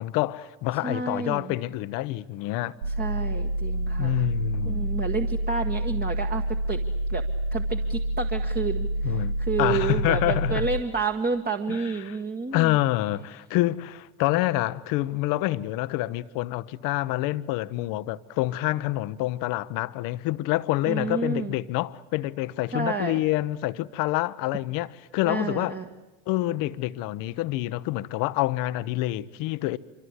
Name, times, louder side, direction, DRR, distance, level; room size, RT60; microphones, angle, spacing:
voice 1, 0.0-2.8 4.0-4.9 9.0-10.7 11.7-12.2 12.5-25.8 26.3-29.8, left 17 dB, 60° left, 1.0 m, -27 dB
voice 2, 0.8-1.5 3.0-4.2 4.6-6.8 7.1-7.2 7.5-12.8 20.9-21.5 22.7-23.2 25.2-25.8, right 4 dB, 25° right, 1.6 m, -30 dB
sound 1, 2.8-10.8, right 1 dB, 80° right, 1.1 m, -28 dB
26.0 x 25.0 x 8.2 m
hypercardioid pair, 65°, 38 cm